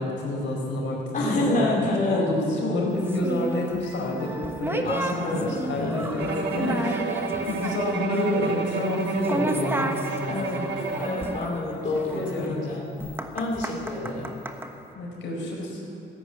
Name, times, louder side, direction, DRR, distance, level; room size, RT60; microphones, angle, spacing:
voice 1, 0.0-1.8 2.1-10.7 11.8-12.7 14.9-15.8, left 2 dB, 70° left, -2 dB, 4.6 m, -29 dB
voice 2, 1.1-2.3 4.8-6.1 10.3-10.7 10.9-12.9 13.3-14.4, left 2 dB, 40° left, -5 dB, 2.8 m, -28 dB
sound 1, 3.1-14.7, right 1 dB, 10° right, 1.2 m, -33 dB
Bowed string instrument, 6.2-11.5, right 5 dB, 60° right, 1.3 m, -31 dB
15.5 x 10.0 x 8.5 m, 2.7 s
cardioid pair, 90°, 20 cm